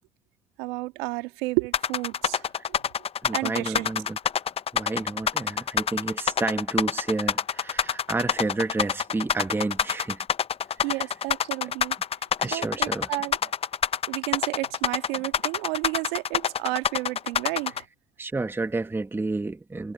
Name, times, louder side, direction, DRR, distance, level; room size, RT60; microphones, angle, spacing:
voice 1, 0.6-2.8 3.3-3.9 10.8-12.0 12.5-13.4 14.1-17.7, right 24 dB, 70° right, 1.6 m, -31 dB
sound 1, 1.7-17.8, left 8 dB, 20° left, 0.6 m, -26 dB
voice 2, 3.2-4.2 4.7-10.3 10.8-11.1 11.6-11.7 12.4-13.1 18.2-19.9, right 3 dB, 5° right, 1.0 m, -30 dB
supercardioid pair, 125°, 30 cm